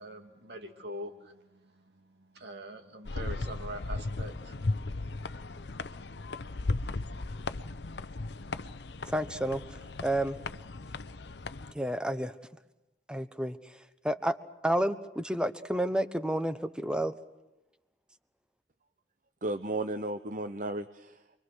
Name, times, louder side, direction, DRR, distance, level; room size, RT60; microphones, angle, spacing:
voice 1, 0.0-4.9, right 1 dB, 65° right, 4 dB, 2.9 m, -44 dB
sound 1, 3.0-11.7, left 3 dB, 70° left, 0.8 m, -36 dB
voice 2, 9.1-10.4 11.7-12.4 13.1-14.3 14.6-17.1, right 1 dB, 5° right, 11 dB, 1.0 m, -31 dB
voice 3, 19.4-21.4, right 2 dB, 45° right, 9 dB, 0.8 m, -34 dB
28.0 x 23.0 x 6.4 m, 0.98 s
head